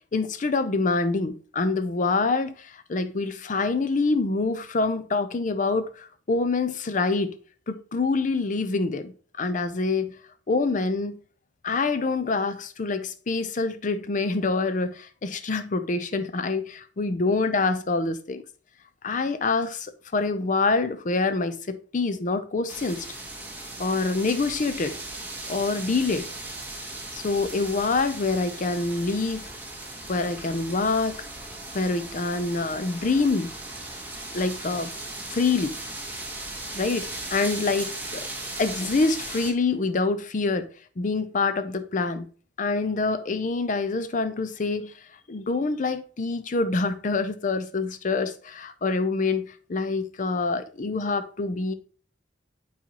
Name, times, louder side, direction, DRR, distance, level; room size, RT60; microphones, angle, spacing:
voice 1, 0.1-7.4 7.7-10.1 10.5-11.2 11.6-18.4 19.0-23.1 23.8-25.0 25.5-26.3 27.1-29.5 30.1-31.2 31.7-33.5 34.3-34.9 35.3-35.8 36.7-37.9 38.6-40.7 41.0-42.3 42.6-44.9 45.3-51.7, left 3 dB, 45° left, 0.5 m, -26 dB
sound 1, 22.7-39.5, right 2 dB, 10° right, 1.1 m, -37 dB
8.5 x 4.2 x 2.9 m
head